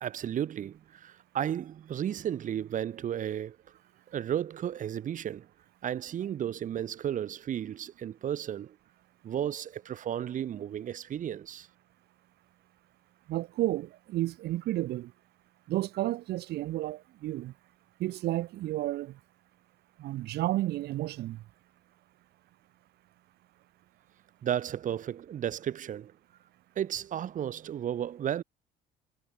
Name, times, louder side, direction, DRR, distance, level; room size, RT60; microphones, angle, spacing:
voice 1, 0.0-3.6 4.1-5.5 5.8-8.8 9.2-11.7 24.4-26.1 26.7-28.4, right 10 dB, 50° right, 1.3 m, -33 dB
voice 2, 13.3-15.1 15.7-17.5 18.0-19.2 20.0-21.4, right 16 dB, 75° right, 2.2 m, -32 dB
cardioid pair, 110°, 17 cm